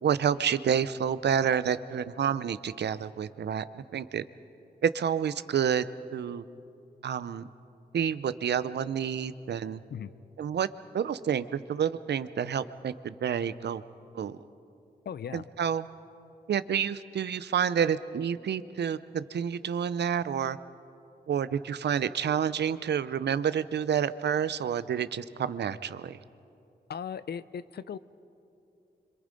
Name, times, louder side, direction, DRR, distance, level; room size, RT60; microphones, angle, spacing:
voice 1, 0.0-4.2 4.8-5.9 6.1-6.4 7.0-7.5 7.9-9.8 10.4-10.7 10.9-13.8 14.1-14.4 15.3-15.9 16.5-20.6 21.3-26.2, right 8 dB, 80° right, 14 dB, 0.7 m, -29 dB
voice 2, 15.0-15.5 26.9-28.0, left 7 dB, 70° left, 16 dB, 0.6 m, -37 dB
26.5 x 26.0 x 5.3 m, 2.7 s
wide cardioid pair, 140°, 17 cm